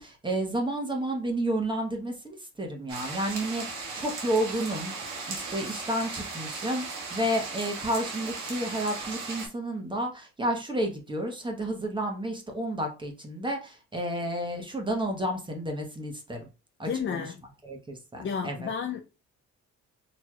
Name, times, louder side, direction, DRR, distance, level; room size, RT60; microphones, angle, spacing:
voice 1, 0.0-16.4 16.8-17.3 17.6-18.7, right 1 dB, 15° right, 1.1 m, -31 dB
sound 1, 2.9-9.5, right 4 dB, 85° right, 1.4 m, -37 dB
voice 2, 16.8-17.4 18.2-19.0, left 7 dB, 40° left, 0.5 m, -32 dB
4.5 x 3.1 x 2.3 m
cardioid pair, 90°, 30 cm